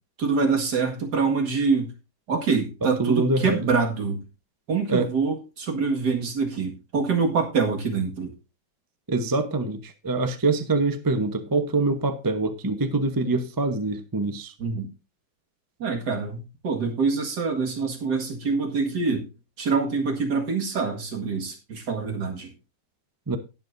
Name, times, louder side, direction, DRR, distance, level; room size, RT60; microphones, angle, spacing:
voice 1, 0.2-1.9 2.3-4.2 4.7-8.3 14.6-14.9 15.8-19.3 19.6-22.5, right 4 dB, 55° right, 2.4 m, -25 dB
voice 2, 3.0-3.7 4.9-5.1 9.1-14.5 23.3-23.4, right 3 dB, 30° right, 0.4 m, -24 dB
19.0 x 7.0 x 2.6 m
omnidirectional pair, 2.1 m